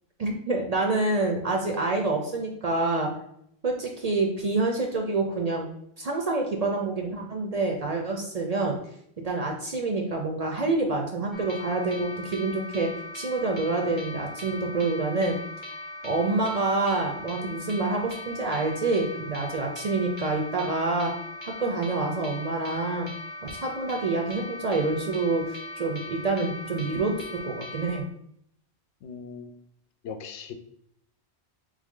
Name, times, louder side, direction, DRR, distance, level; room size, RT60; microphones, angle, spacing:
voice 1, 0.2-3.1 3.6-5.7 6.0-8.8 9.2-15.4 16.0-21.1 21.4-23.1 23.4-28.1, right 3 dB, 50° right, 1 dB, 0.5 m, -27 dB
sound 1, 11.3-28.0, left 1 dB, 40° left, 0.4 m, -40 dB
voice 2, 29.0-29.5 30.0-30.5, left 6 dB, 85° left, 8 dB, 0.9 m, -39 dB
3.5 x 3.4 x 3.6 m, 0.72 s
omnidirectional pair, 1.1 m